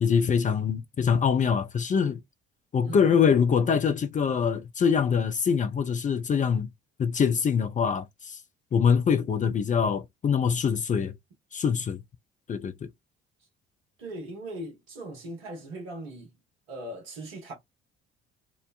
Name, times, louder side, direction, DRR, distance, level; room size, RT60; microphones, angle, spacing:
voice 1, 0.0-2.2 2.7-6.7 7.0-8.4 8.7-11.1 11.5-12.0 12.5-12.9, left 6 dB, 25° left, 0.4 m, -24 dB
voice 2, 14.0-16.3 16.7-17.5, right 1 dB, 75° right, 1.1 m, -39 dB
3.0 x 2.0 x 2.3 m
figure-of-eight pair, 50°, 31 cm